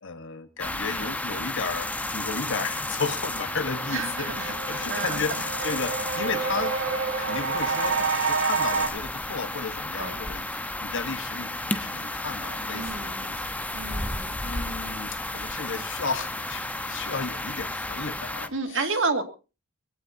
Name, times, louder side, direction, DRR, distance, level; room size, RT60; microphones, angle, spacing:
voice 1, 0.0-6.8 7.2-13.4 14.4-18.8, left 4 dB, 65° left, 1.5 m, -34 dB
sound 1, 0.6-18.5, left 1 dB, 5° left, 1.1 m, -32 dB
sound 2, 3.1-3.2 3.5-8.9, right 5 dB, 80° right, 3.1 m, -29 dB
voice 2, 3.9-5.2 5.6-5.7 10.0-10.2 12.7-13.3 13.7-14.4 18.5-19.2, right 4 dB, 65° right, 2.4 m, -31 dB
22.5 x 16.5 x 2.8 m
head